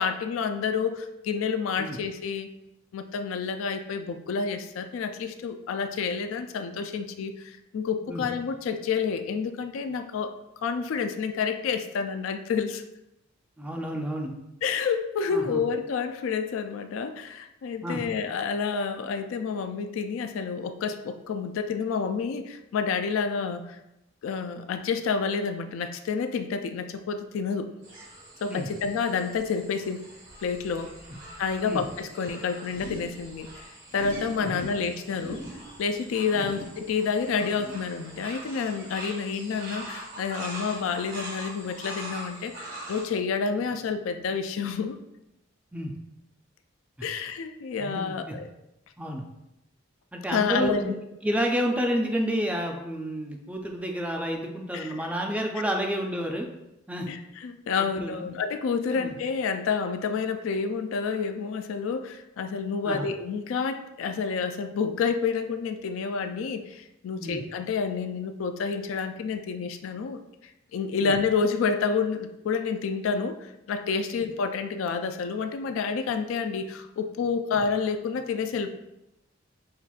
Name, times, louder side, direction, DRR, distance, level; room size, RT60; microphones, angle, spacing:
voice 1, 0.0-2.5 2.9-10.3 10.6-12.8 14.6-23.8 24.2-27.7 28.4-30.0 30.4-30.9 31.4-33.6 33.9-35.4 35.8-45.0 47.0-48.5 50.3-50.9 54.7-54.9 57.1-70.2 70.7-78.8, left 5 dB, 80° left, 8 dB, 0.3 m, -29 dB
voice 2, 13.6-14.3 15.3-15.6 17.8-18.0 28.5-28.7 31.6-31.8 34.4-34.6 36.3-36.5 45.7-45.9 47.0-47.1 47.8-48.4 49.0-49.2 50.1-51.0 51.2-56.5 56.9-57.1 58.0-58.3 58.9-59.1 62.8-63.1 67.2-67.4 71.0-71.1 74.2-74.3 77.5-77.6, equal, 5° right, 2 dB, 0.3 m, -30 dB
sound 1, 27.8-43.1, right 1 dB, 80° right, 1.5 m, -42 dB
5.6 x 2.4 x 2.3 m, 0.88 s
head